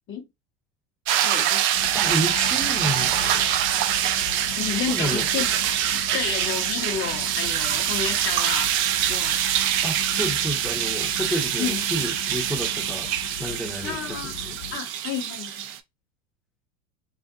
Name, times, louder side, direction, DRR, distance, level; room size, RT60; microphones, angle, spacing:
sound 1, 1.1-15.8, right 11 dB, 35° right, 0.4 m, -25 dB
voice 1, 1.2-1.6 4.6-5.5 5.9-8.7 9.1-9.4 11.6-11.8 13.8-14.3 14.7-15.7, left 7 dB, 35° left, 0.9 m, -31 dB
sound 2, 1.7-14.8, left 11 dB, 65° left, 0.5 m, -40 dB
voice 2, 1.9-3.5 4.9-5.3 9.8-13.1 13.4-14.5, equal, ahead, 0.8 m, -30 dB
2.5 x 2.4 x 2.4 m
hypercardioid pair, 90°, 37 cm